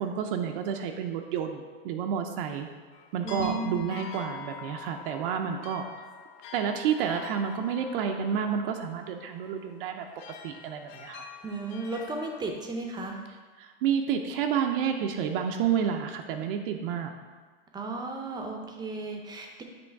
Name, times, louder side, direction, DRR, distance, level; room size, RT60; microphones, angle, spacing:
voice 1, 0.0-2.7 3.1-5.9 6.5-10.0 10.4-11.3 13.6-17.1, right 8 dB, 65° right, 4 dB, 0.6 m, -30 dB
sound 1, 2.9-12.4, left 7 dB, 55° left, 0.7 m, -45 dB
voice 2, 3.2-3.9 11.4-13.2 17.7-19.6, right 3 dB, 15° right, 3 dB, 0.6 m, -34 dB
7.8 x 3.1 x 4.6 m, 1.4 s
supercardioid pair, 140°, 29 cm